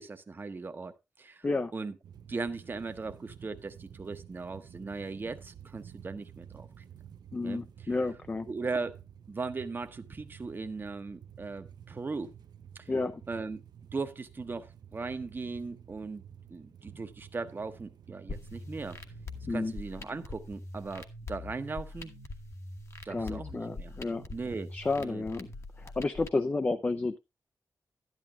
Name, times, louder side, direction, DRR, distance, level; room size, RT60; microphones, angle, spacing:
voice 1, 0.0-1.5 1.7-2.0 2.3-6.8 7.4-7.9 8.5-9.0 9.3-12.3 12.7-12.9 13.3-13.6 13.9-16.2 16.5-19.0 19.5-22.1 23.0-24.0 24.3-24.7 25.0-25.2, right 4 dB, 30° right, 0.8 m, -38 dB
sound 1, 2.0-19.9, right 9 dB, 85° right, 0.6 m, -51 dB
voice 2, 7.3-8.5 12.9-13.2 19.5-19.7 23.1-24.2 24.7-25.5 25.8-27.2, left 3 dB, 25° left, 0.4 m, -31 dB
sound 2, 18.3-26.3, left 2 dB, 45° left, 1.1 m, -43 dB
12.0 x 10.5 x 2.3 m
wide cardioid pair, 180°, 7 cm